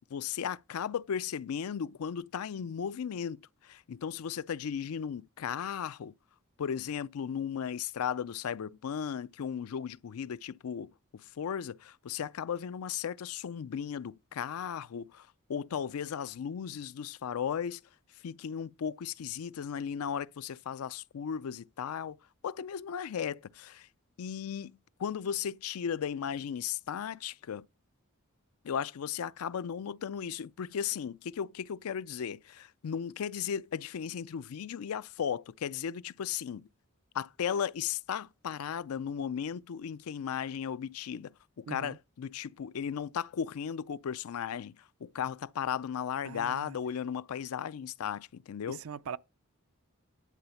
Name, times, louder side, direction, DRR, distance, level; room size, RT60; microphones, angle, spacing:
voice 1, 0.1-6.1 6.6-17.8 18.2-22.2 22.4-23.9 24.2-27.6 28.6-36.7 37.1-44.7 45.0-48.8, left 8 dB, 85° left, 0.4 m, -36 dB
voice 2, 41.7-42.0 46.2-46.8 48.7-49.2, right 7 dB, 75° right, 0.5 m, -41 dB
11.0 x 4.1 x 7.0 m
head